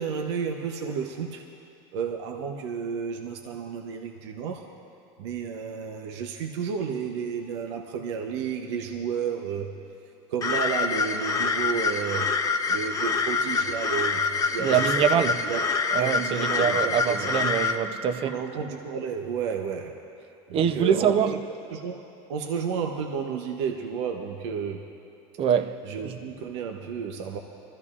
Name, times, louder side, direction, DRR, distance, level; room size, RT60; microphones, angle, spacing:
voice 1, 0.0-1.5 1.9-4.7 5.2-9.8 10.3-12.3 12.7-15.6 16.0-17.3 18.2-20.0 20.5-24.8 25.8-27.4, right 6 dB, 90° right, 0.8 m, -32 dB
sound 1, 10.4-17.7, left 4 dB, 25° left, 0.7 m, -26 dB
voice 2, 14.6-15.4 15.9-18.3 20.5-21.3 25.4-25.8 26.0-26.2, right 8 dB, 40° right, 0.7 m, -24 dB
24.0 x 14.0 x 2.5 m
supercardioid pair, 120°, 14 cm